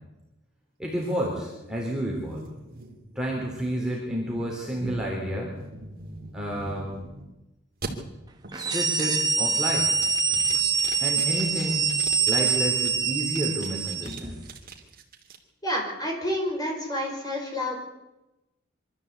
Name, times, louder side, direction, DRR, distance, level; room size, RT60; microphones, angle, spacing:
voice 1, 0.8-2.5 3.2-5.5 6.3-6.9 8.5-10.0 11.0-11.8 12.3-14.4, equal, 5° right, -3 dB, 3.5 m, -30 dB
sound 1, 1.0-7.3 7.8-7.9 8.4-8.8 9.2-9.6 10.0-12.9 13.4-15.4, right 3 dB, 45° right, 2.8 m, -42 dB
sound 2, 8.5-14.2, right 5 dB, 20° right, 1.6 m, -25 dB
voice 2, 15.6-17.7, left 1 dB, 20° left, 0 dB, 5.3 m, -29 dB
24.5 x 13.5 x 8.2 m, 0.98 s
head